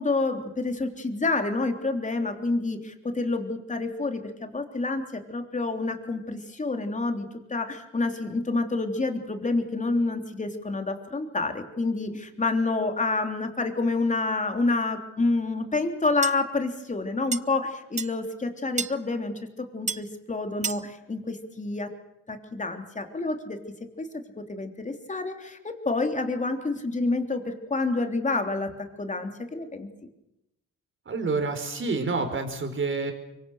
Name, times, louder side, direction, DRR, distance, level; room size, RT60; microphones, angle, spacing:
voice 1, 0.0-21.9 22.3-23.6 24.0-28.7 29.0-29.9, left 3 dB, 25° left, 5 dB, 3.4 m, -28 dB
sound 1, 16.2-16.3 17.3-17.4 18.0-18.1 18.8-18.9 19.9-20.0 20.6-20.8, right 5 dB, 25° right, 0.8 m, -29 dB
voice 2, 31.1-33.1, right 3 dB, 40° right, 6 dB, 5.0 m, -28 dB
25.0 x 24.0 x 6.5 m, 0.88 s
cardioid pair, 90°, 30 cm